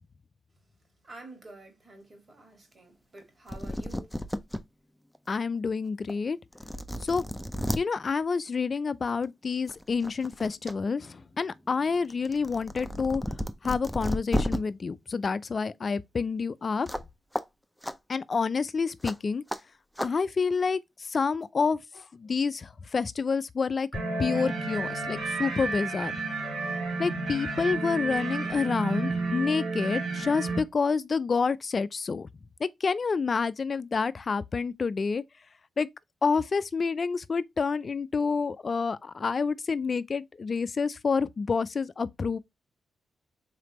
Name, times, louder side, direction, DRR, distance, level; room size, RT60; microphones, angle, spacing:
voice 1, 1.0-4.2, right 2 dB, 45° right, 2.3 m, -49 dB
sound 1, 3.2-3.3 3.5-4.6 5.1-5.2 6.1-6.2 6.5-7.8 9.1-9.3 9.7-10.7 11.1-14.6 16.9-17.1 17.3-17.4 17.8-17.9 19.0-19.1 19.5-19.6 20.0-20.1, equal, ahead, 0.6 m, -33 dB
voice 2, 5.3-6.4 7.0-7.2 7.8-13.4 13.6-16.9 18.1-19.4 20.0-23.9 24.2-26.1 27.0-32.3 32.6-35.2 35.8-35.9 36.2-42.4, left 5 dB, 50° left, 0.4 m, -28 dB
sound 2, 23.9-30.6, right 3 dB, 70° right, 1.9 m, -31 dB
4.0 x 3.3 x 3.0 m
cardioid pair, 60°, 0 cm